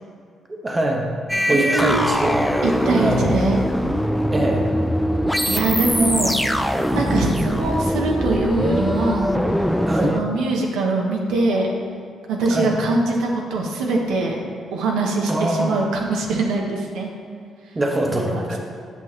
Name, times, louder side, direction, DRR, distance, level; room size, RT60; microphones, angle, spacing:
voice 1, 0.5-1.1 1.5-2.4 2.9-3.2 4.3-4.6 9.9-10.2 12.5-12.7 15.3-15.8 17.7-18.6, right 1 dB, 25° right, 1 dB, 0.9 m, -23 dB
sound 1, 1.3-10.2, equal, ahead, 0.3 m, -22 dB
voice 2, 1.5-2.3 2.6-3.6 5.5-6.4 6.9-9.3 10.0-11.7 12.3-14.4 14.7-17.1 18.1-18.6, right 2 dB, 90° right, 0 dB, 0.9 m, -22 dB
8.3 x 5.8 x 3.1 m, 2.2 s
cardioid pair, 90°, 0 cm